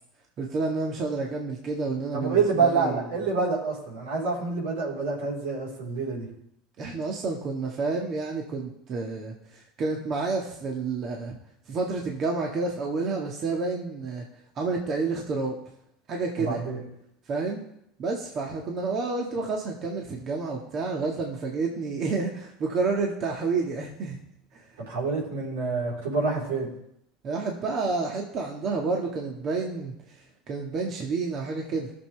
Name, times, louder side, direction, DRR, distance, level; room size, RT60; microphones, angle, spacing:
voice 1, 0.4-3.0 6.8-11.3 11.7-14.2 14.6-15.6 16.1-16.6 17.3-17.6 18.0-24.2 24.5-24.6 27.2-31.9, right 4 dB, 45° right, 0 dB, 1.8 m, -29 dB
voice 2, 2.1-6.3 16.4-16.8 24.8-26.7, right 4 dB, 80° right, -3 dB, 4.1 m, -27 dB
17.0 x 6.9 x 3.4 m, 0.77 s
hypercardioid pair, 85°, 0 cm